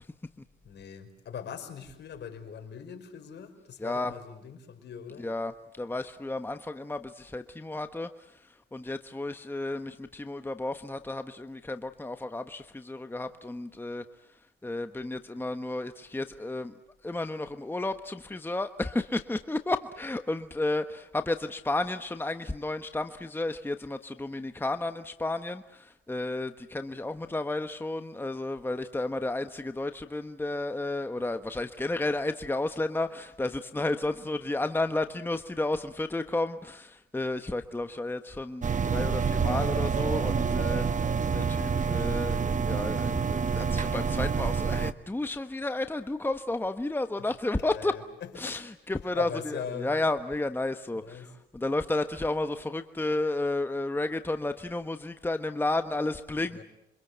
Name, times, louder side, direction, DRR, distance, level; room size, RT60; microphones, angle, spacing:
voice 1, 0.6-5.3 47.6-48.6 48.9-49.9 50.9-51.3 56.5-56.6, left 7 dB, 60° left, 5 dB, 5.2 m, -41 dB
voice 2, 3.8-4.1 5.2-5.5 5.8-8.1 8.7-14.0 14.6-16.7 17.0-38.7 38.9-40.8 41.3-47.9 48.4-49.3 49.8-56.6, left 2 dB, 10° left, 8 dB, 1.2 m, -32 dB
sound 1, 38.6-44.9, right 6 dB, 40° right, 1.1 m, -27 dB
28.5 x 25.0 x 8.1 m, 0.82 s
cardioid pair, 90°, 20 cm